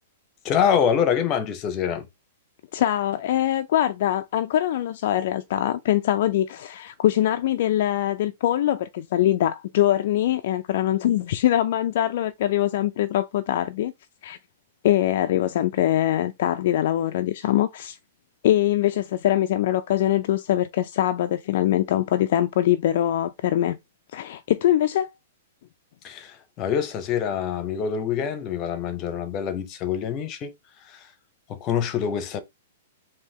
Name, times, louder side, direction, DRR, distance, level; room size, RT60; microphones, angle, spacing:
voice 1, 0.4-2.1 26.0-30.5 30.9-31.1 31.5-32.4, left 8 dB, 25° left, 0.8 m, -25 dB
voice 2, 2.7-13.9 14.2-14.4 14.8-18.0 18.4-23.8 24.1-25.1, left 12 dB, 55° left, 0.4 m, -23 dB
4.1 x 2.7 x 3.6 m
hypercardioid pair, 160°, 0 cm